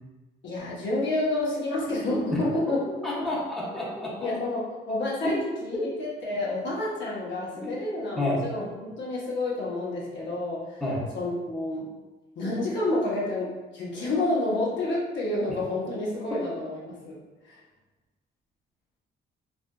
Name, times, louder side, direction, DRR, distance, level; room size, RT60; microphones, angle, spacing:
voice 1, 0.4-2.8 4.2-10.8 11.1-11.9 12.4-17.2 17.4-17.6, left 2 dB, 65° left, -5 dB, 0.8 m, -29 dB
voice 2, 3.0-4.3 5.7-5.9 7.5-7.8 8.2-8.5 10.8-11.0, left 1 dB, ahead, -7 dB, 0.7 m, -29 dB
2.5 x 2.4 x 2.2 m, 1.2 s
cardioid pair, 90°, 20 cm